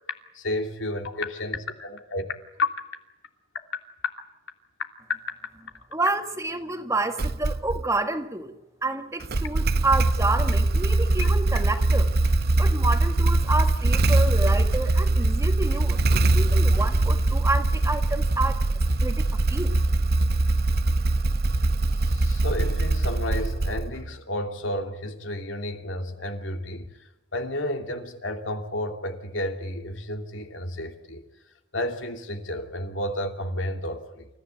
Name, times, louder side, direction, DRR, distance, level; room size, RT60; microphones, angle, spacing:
voice 1, 0.3-2.3 2.6-2.7 11.2-11.3 22.0-26.9 27.3-31.2 31.7-34.3, left 1 dB, 75° left, 5 dB, 3.0 m, -31 dB
voice 2, 5.9-8.5 8.8-12.1 12.6-18.6 19.0-19.2 19.5-19.8, right 2 dB, 15° right, 7 dB, 1.7 m, -29 dB
Motorcycle / Engine starting, 7.2-7.9 9.2-24.1, right 2 dB, 55° right, 0.8 m, -22 dB
29.0 x 15.0 x 9.2 m, 0.96 s
head